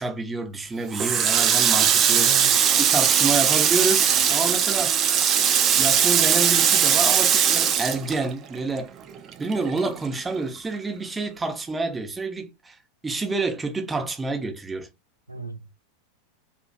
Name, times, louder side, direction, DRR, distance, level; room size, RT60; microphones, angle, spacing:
voice 1, 0.0-2.3 2.8-5.0 5.8-8.9 9.4-12.8 13.0-14.9, right 3 dB, 15° right, 0.8 m, -28 dB
Water tap faucet, 0.9-8.8 9.1-10.4, right 8 dB, 30° right, 0.4 m, -20 dB
voice 2, 2.1-2.6 5.9-6.0 15.3-15.7, right 3 dB, 90° right, 0.5 m, -36 dB
3.1 x 2.6 x 2.2 m
figure-of-eight pair, 85°, 0 cm